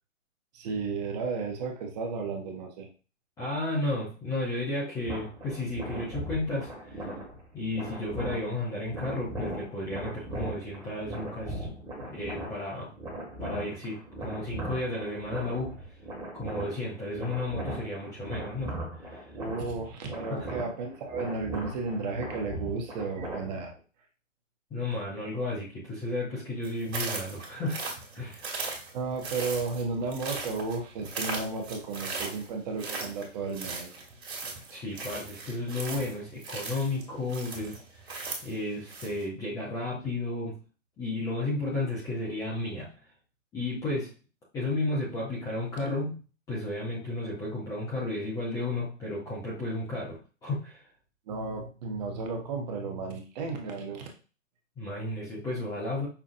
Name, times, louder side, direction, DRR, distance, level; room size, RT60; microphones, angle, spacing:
voice 1, 0.5-2.9 19.4-23.7 28.9-33.9 51.3-54.1, right 4 dB, 35° right, 3 dB, 0.8 m, -33 dB
voice 2, 3.4-7.1 7.5-11.7 12.0-12.9 13.4-15.7 16.3-18.7 19.0-19.2 20.3-20.5 24.7-27.8 28.1-28.5 34.7-38.1 38.4-40.6 41.0-42.9 43.5-44.1 44.5-46.2 46.5-50.8 54.8-56.1, left 2 dB, 10° left, -7 dB, 0.5 m, -33 dB
sound 1, 5.1-23.8, right 1 dB, 10° right, 1.3 m, -39 dB
sound 2, 26.6-39.2, right 3 dB, 55° right, 1.7 m, -38 dB
5.7 x 2.4 x 2.5 m, 0.36 s
hypercardioid pair, 130°, 39 cm